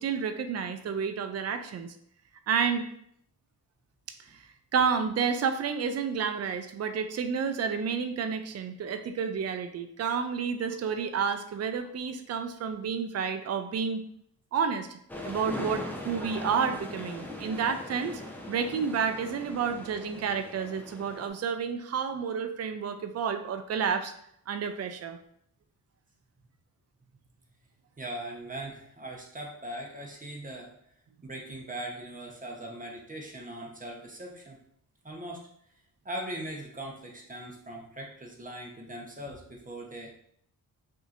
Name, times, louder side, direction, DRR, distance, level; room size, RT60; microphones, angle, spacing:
voice 1, 0.0-1.9 2.5-2.9 4.2-4.4 4.7-14.0 14.5-15.0 15.2-18.2 18.5-24.1 24.5-25.2, right 6 dB, 45° right, 7 dB, 0.4 m, -30 dB
sound 1, 15.1-21.3, left 2 dB, 5° left, 0.6 m, -40 dB
voice 2, 28.0-30.7 31.2-34.6 35.0-35.5 36.0-40.1, right 1 dB, 20° right, 0 dB, 0.9 m, -40 dB
6.1 x 2.7 x 2.5 m, 0.69 s
wide cardioid pair, 110°, 37 cm